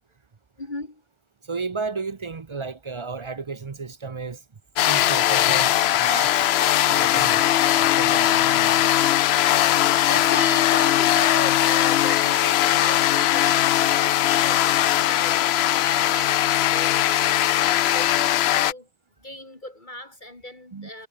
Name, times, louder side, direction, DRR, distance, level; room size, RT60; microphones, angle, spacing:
voice 1, 0.6-1.0 9.5-18.9 19.2-21.1, left 1 dB, 30° left, 2.7 m, -37 dB
voice 2, 1.4-4.4 4.9-6.4 6.8-7.4 7.7-9.1 20.7-20.9, right 4 dB, 40° right, 0.4 m, -33 dB
sound 1, 4.8-18.7, left 13 dB, 80° left, 0.5 m, -20 dB
omnidirectional pair, 1.6 m